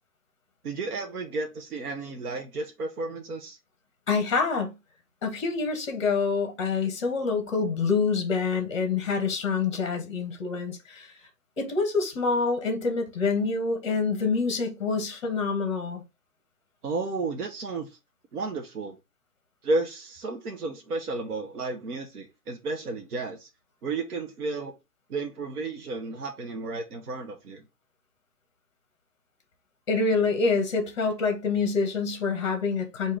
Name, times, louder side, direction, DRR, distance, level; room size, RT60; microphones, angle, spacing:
voice 1, 0.6-3.6 16.8-18.0 18.3-19.0 19.6-23.5 23.8-24.7 25.1-27.6, right 3 dB, 65° right, 1.0 m, -32 dB
voice 2, 4.1-4.7 5.2-11.1 11.6-16.0 29.9-33.2, left 4 dB, 20° left, 0.9 m, -26 dB
3.7 x 2.8 x 4.6 m
hypercardioid pair, 165°, 47 cm